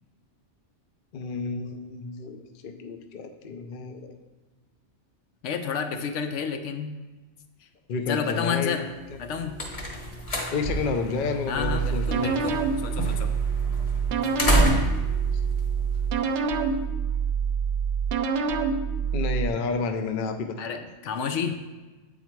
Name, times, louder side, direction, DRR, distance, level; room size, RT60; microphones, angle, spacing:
voice 1, 1.1-4.2 7.9-8.8 10.5-12.4 19.1-20.6, left 4 dB, 55° left, 6 dB, 0.7 m, -30 dB
voice 2, 5.4-6.9 8.1-8.9 9.2-9.6 11.5-13.3 20.6-21.6, left 6 dB, 80° left, 7 dB, 1.0 m, -30 dB
sound 1, 9.1-16.5, right 1 dB, 35° left, 1.0 m, -29 dB
sound 2, 11.6-19.5, right 6 dB, 75° right, 0.9 m, -26 dB
8.3 x 4.1 x 4.5 m, 1.2 s
omnidirectional pair, 1.2 m